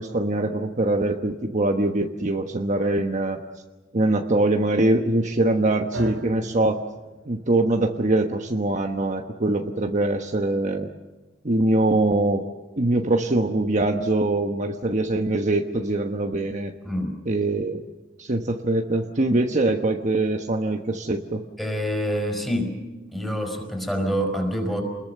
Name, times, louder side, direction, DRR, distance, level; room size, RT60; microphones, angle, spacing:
voice 1, 0.0-3.4 3.9-6.8 7.3-10.9 11.4-12.5 12.8-16.7 17.2-17.8 18.2-21.4, right 2 dB, 40° right, 3 dB, 1.2 m, -23 dB
sound 1, 5.9-14.2, right 1 dB, 80° right, 3.0 m, -41 dB
voice 2, 21.6-22.8 23.1-24.8, equal, ahead, 4 dB, 4.9 m, -26 dB
28.5 x 21.5 x 6.8 m, 1.2 s
head